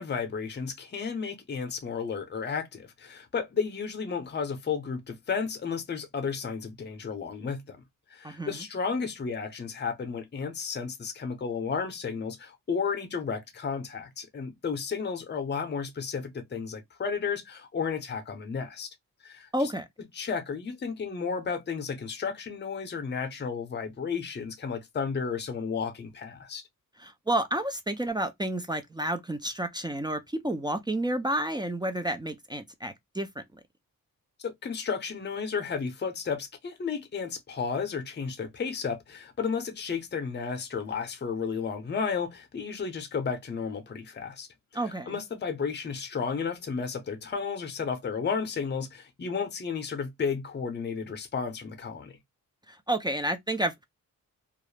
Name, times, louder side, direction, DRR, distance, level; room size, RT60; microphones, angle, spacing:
voice 1, 0.0-7.8 8.1-18.9 19.2-19.7 20.1-26.6 34.4-44.5 44.9-52.2, left 5 dB, 30° left, 0.6 m, -33 dB
voice 2, 8.2-8.7 19.5-19.9 27.0-33.4 44.7-45.2 52.7-53.8, right 1 dB, 15° right, 0.3 m, -30 dB
2.4 x 2.0 x 3.1 m
wide cardioid pair, 100°, 34 cm